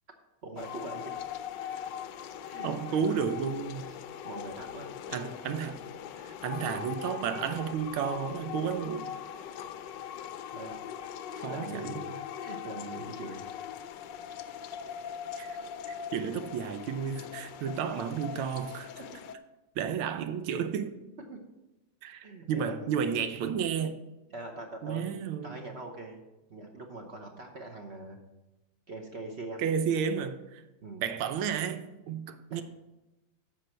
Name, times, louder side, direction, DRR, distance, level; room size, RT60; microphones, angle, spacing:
voice 1, 0.4-1.1 2.4-3.1 3.9-4.0 4.2-5.0 10.5-10.7 11.5-12.0 12.4-13.5 15.8-16.0 19.0-19.1 21.2-21.4 22.2-22.9 24.3-25.2 25.4-26.2 26.5-28.2 28.9-29.7 30.8-31.0 32.5-32.6, right 2 dB, 50° right, 0.8 m, -42 dB
sound 1, 0.6-19.4, left 9 dB, 75° left, 1.0 m, -41 dB
voice 2, 2.6-3.9 5.1-5.8 6.2-9.1 11.4-12.1 15.4-15.6 15.9-18.9 19.8-21.0 22.0-24.0 24.8-25.6 29.6-30.6 31.0-32.6, right 7 dB, 75° right, 1.5 m, -32 dB
10.5 x 6.8 x 4.4 m
omnidirectional pair, 2.4 m